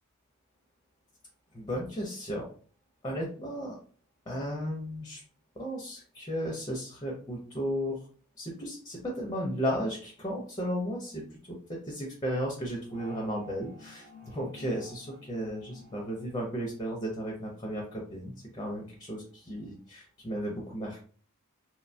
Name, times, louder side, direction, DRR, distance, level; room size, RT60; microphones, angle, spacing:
voice 1, 1.5-2.5 3.0-3.8 4.3-5.2 5.6-8.0 8.4-21.0, equal, 20° left, -1 dB, 0.5 m, -34 dB
sound 1, 12.9-17.5, left 2 dB, 45° right, 0.9 m, -52 dB
2.9 x 2.1 x 2.5 m, 0.44 s
head